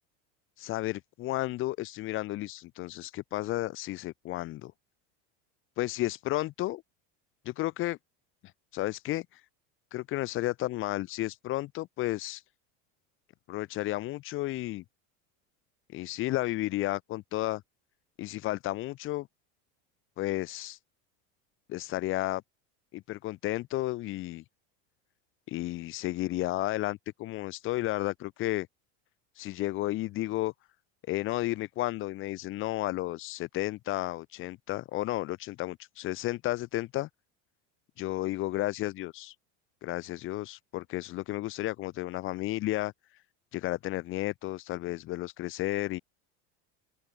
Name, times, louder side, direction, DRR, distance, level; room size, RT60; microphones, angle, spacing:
voice 1, 0.6-4.7 5.8-6.8 7.4-8.0 8.4-9.4 9.9-12.4 13.5-14.8 15.9-17.6 18.2-19.3 20.2-20.8 21.7-22.4 22.9-24.4 25.5-28.7 29.3-30.5 31.1-37.1 38.0-39.4 39.8-43.2 43.5-46.0, left 17 dB, 35° left, 1.2 m, -32 dB
open air
cardioid pair, 160°, 34 cm